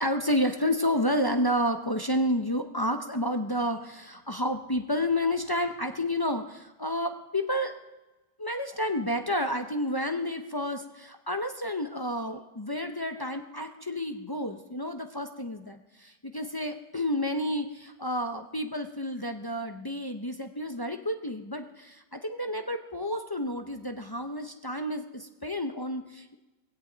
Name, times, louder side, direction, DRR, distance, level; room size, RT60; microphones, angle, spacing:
voice 1, 0.0-7.7 8.4-26.3, left 1 dB, 35° left, 5 dB, 0.3 m, -30 dB
19.5 x 17.0 x 4.0 m, 1.1 s
omnidirectional pair, 1.7 m